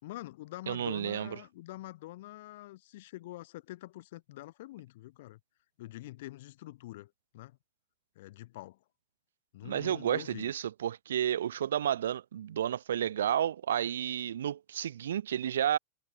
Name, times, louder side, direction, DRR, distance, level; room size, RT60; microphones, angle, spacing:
voice 1, 0.0-5.4 5.8-7.6 8.1-8.8 9.5-10.5, left 17 dB, 55° left, 3.4 m, -45 dB
voice 2, 0.7-1.4 9.6-15.8, right 10 dB, 65° right, 1.9 m, -31 dB
figure-of-eight pair, 90°, 0 cm